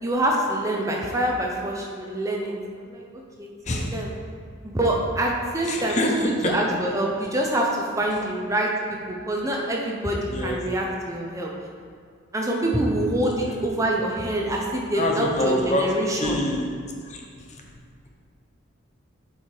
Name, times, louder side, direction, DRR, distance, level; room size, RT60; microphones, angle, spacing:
voice 1, 0.0-2.5 2.8-3.0 3.4-4.1 4.6-8.7 9.1-11.5 12.3-16.4, right 1 dB, 15° right, -1 dB, 0.7 m, -25 dB
voice 2, 3.6-4.0 5.6-6.6 10.3-10.6 13.3-13.6 14.9-15.9 16.2-16.7 17.0-17.6, left 1 dB, 35° left, 0 dB, 0.7 m, -26 dB
7.2 x 5.0 x 4.5 m, 2.2 s
head